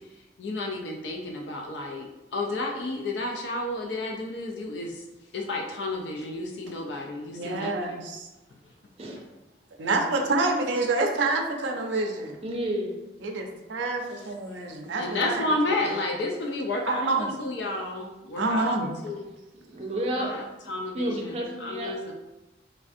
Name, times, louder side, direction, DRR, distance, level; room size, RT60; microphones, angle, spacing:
voice 1, 0.4-5.0 5.3-8.0 15.0-18.8 19.0-19.2 20.2-22.1, left 2 dB, 75° left, 1 dB, 0.4 m, -31 dB
voice 2, 7.3-8.3 9.8-12.4 13.2-15.9 16.8-17.4 18.3-18.9, right 3 dB, 85° right, 2 dB, 0.4 m, -27 dB
voice 3, 12.4-13.0 19.5-20.3 20.9-21.9, right 1 dB, 35° right, -1 dB, 0.5 m, -30 dB
3.2 x 2.4 x 2.5 m, 1.0 s
head